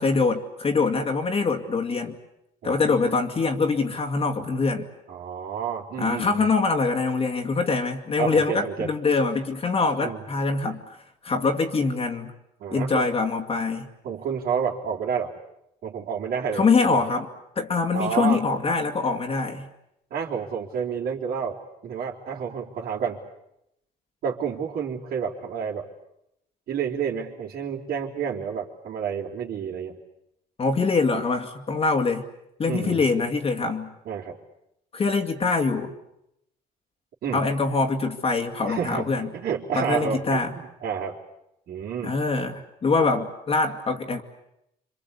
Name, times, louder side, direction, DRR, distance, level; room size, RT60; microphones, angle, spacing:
voice 1, 0.0-2.2 2.6-4.9 6.0-10.8 11.2-12.3 12.7-13.9 16.5-17.3 17.6-19.7 30.6-32.2 32.6-33.9 34.9-35.9 37.3-39.3 39.8-40.5 42.0-44.2, left 4 dB, 35° left, 2 dB, 2.4 m, -24 dB
voice 2, 5.1-6.5 8.2-8.9 10.0-10.2 12.6-13.1 14.0-15.3 15.8-17.0 17.9-18.4 20.1-23.2 24.2-25.9 26.7-30.0 32.7-33.0 34.1-34.4 37.2-37.4 38.7-39.1 39.3-41.2 41.7-42.2, right 7 dB, 65° right, -6 dB, 3.6 m, -30 dB
27.0 x 25.0 x 8.4 m, 0.82 s
cardioid pair, 110°, 17 cm